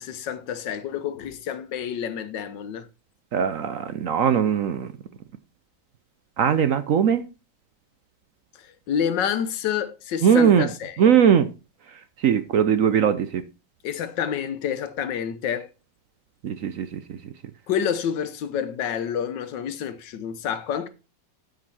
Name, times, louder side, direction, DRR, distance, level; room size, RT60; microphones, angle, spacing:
voice 1, 0.0-2.9 8.5-11.1 13.8-15.7 17.7-20.9, left 8 dB, 85° left, 1.6 m, -28 dB
voice 2, 3.3-4.9 6.4-7.2 10.2-10.7 11.0-11.5 12.2-13.4 16.4-17.0, right 8 dB, 65° right, 0.9 m, -20 dB
12.5 x 5.4 x 4.2 m
omnidirectional pair, 1.9 m